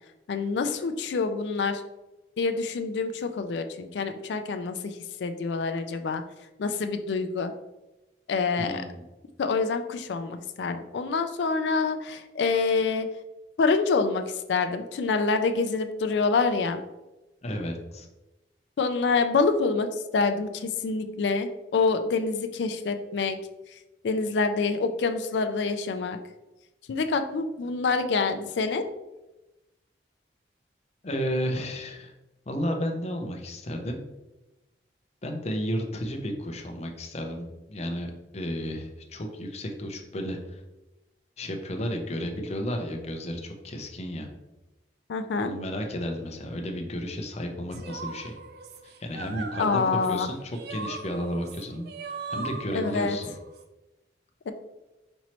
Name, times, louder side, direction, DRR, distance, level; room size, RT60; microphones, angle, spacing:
voice 1, 0.3-1.8 2.4-6.2 6.6-7.5 8.3-8.8 9.4-13.1 13.6-16.8 18.8-23.4 24.0-26.2 26.9-28.8 45.1-45.5 49.6-50.3 52.7-53.2 54.5-54.6, left 4 dB, 80° left, 8 dB, 0.4 m, -26 dB
voice 2, 8.6-9.0 17.4-18.1 31.0-32.1 32.5-34.1 35.2-40.6 41.4-44.3 45.4-48.4 48.8-53.3, equal, 40° left, 3 dB, 0.6 m, -33 dB
sound 1, 47.7-53.6, right 4 dB, 65° right, 0.4 m, -39 dB
5.4 x 3.0 x 2.9 m, 1.0 s
head